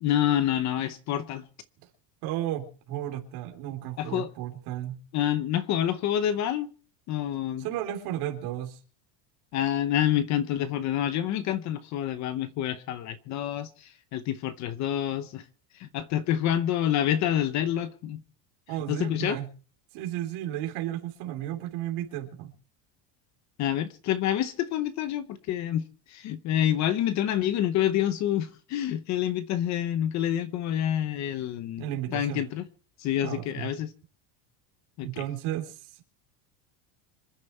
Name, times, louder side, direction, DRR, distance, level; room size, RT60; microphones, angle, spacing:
voice 1, 0.0-1.4 4.0-4.3 5.1-6.7 7.1-7.6 9.5-15.4 15.7-18.2 18.9-19.4 23.6-31.8 32.1-32.6 33.0-33.9 35.0-35.2, left 11 dB, 35° left, 0.8 m, -27 dB
voice 2, 2.2-5.0 7.6-8.8 18.7-19.5 19.9-22.5 31.8-32.5 33.1-33.7 35.0-35.9, right 12 dB, 50° right, 3.6 m, -33 dB
26.0 x 10.0 x 4.5 m
cardioid pair, 180°, 50 cm